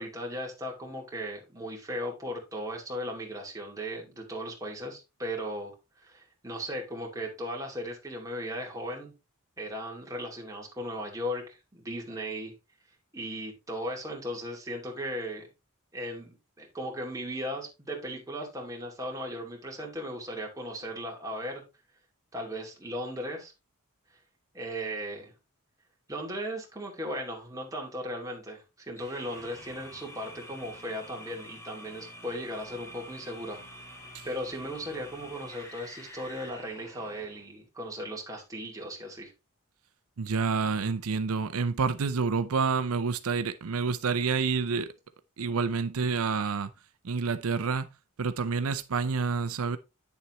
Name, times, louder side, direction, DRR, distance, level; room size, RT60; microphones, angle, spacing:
voice 1, 0.0-9.1 9.6-12.5 13.1-15.5 15.9-21.6 22.3-23.5 24.5-25.3 26.1-33.6 34.2-39.3, equal, 15° right, 2.5 m, -37 dB
sound 1, 29.0-37.5, equal, 15° left, 2.2 m, -47 dB
voice 2, 40.2-44.9 45.4-46.7 47.0-47.9 48.2-49.8, right 5 dB, 80° right, 0.6 m, -28 dB
9.4 x 7.1 x 3.1 m
head